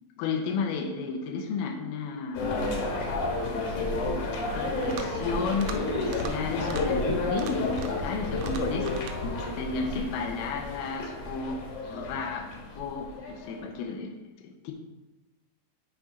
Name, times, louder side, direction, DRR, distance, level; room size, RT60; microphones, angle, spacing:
voice 1, 0.2-2.7 3.4-3.9 4.5-11.6 11.9-12.5 12.8-14.1 14.4-14.7, left 4 dB, 90° left, 1 dB, 2.2 m, -33 dB
sound 1, 2.3-13.6, left 2 dB, 65° left, 2.2 m, -31 dB
sound 2, 4.7-5.2 5.5-5.8 6.1-6.3 6.6-6.8 7.3-8.1 8.4-9.2, right 7 dB, 85° right, 3.3 m, -41 dB
8.8 x 3.7 x 5.1 m, 1.1 s
omnidirectional pair, 5.5 m